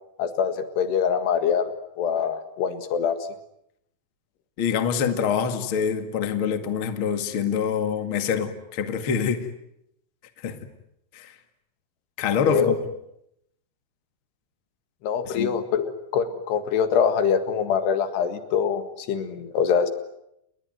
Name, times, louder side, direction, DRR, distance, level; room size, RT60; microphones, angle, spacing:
voice 1, 0.2-3.2 12.4-12.8 15.0-19.9, left 7 dB, 75° left, 9 dB, 3.9 m, -24 dB
voice 2, 4.6-9.5 10.4-10.6 11.1-11.3 12.2-12.7 15.3-15.5, left 7 dB, 40° left, 8 dB, 2.2 m, -25 dB
30.0 x 21.0 x 9.4 m, 0.80 s
omnidirectional pair, 4.9 m